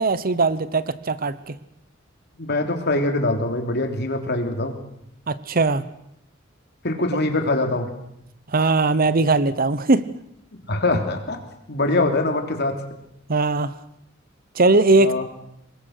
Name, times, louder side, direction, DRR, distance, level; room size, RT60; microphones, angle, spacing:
voice 1, 0.0-1.6 5.3-5.8 8.5-10.0 13.3-13.7 14.6-15.2, right 3 dB, 45° right, 15 dB, 0.9 m, -19 dB
voice 2, 2.4-4.8 6.8-7.9 10.5-11.4 11.7-12.8 15.0-15.2, left 2 dB, 55° left, 5 dB, 3.3 m, -23 dB
24.0 x 21.0 x 6.7 m, 0.78 s
head